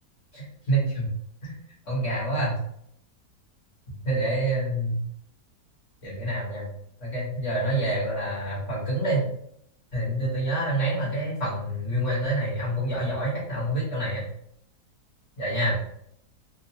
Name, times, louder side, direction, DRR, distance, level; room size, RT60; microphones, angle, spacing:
voice 1, 0.3-1.1 1.4-1.6 1.9-2.6 4.0-5.0 6.0-6.7 7.0-9.3 9.9-14.2 15.4-15.8, right 1 dB, 50° left, -6 dB, 1.5 m, -27 dB
3.6 x 2.5 x 2.8 m, 0.69 s
omnidirectional pair, 1.8 m